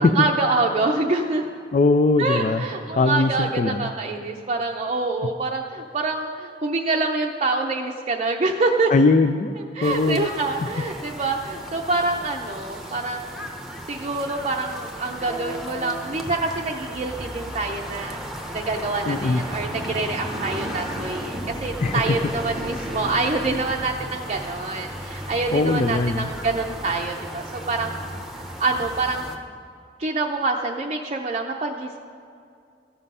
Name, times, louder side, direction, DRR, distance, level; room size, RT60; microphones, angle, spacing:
voice 1, 0.0-1.4 2.2-8.9 9.7-13.5 13.9-18.2 18.5-27.9 28.4-29.3 30.0-32.0, right 3 dB, 35° right, 1 dB, 0.6 m, -26 dB
voice 2, 1.7-2.6 2.9-3.9 8.9-9.5 9.8-10.3 19.1-19.4 21.8-22.0 25.5-26.3, left 3 dB, 40° left, 8 dB, 0.4 m, -20 dB
sound 1, 9.8-29.4, equal, ahead, 0.9 m, -34 dB
14.0 x 7.4 x 5.5 m, 2.4 s
head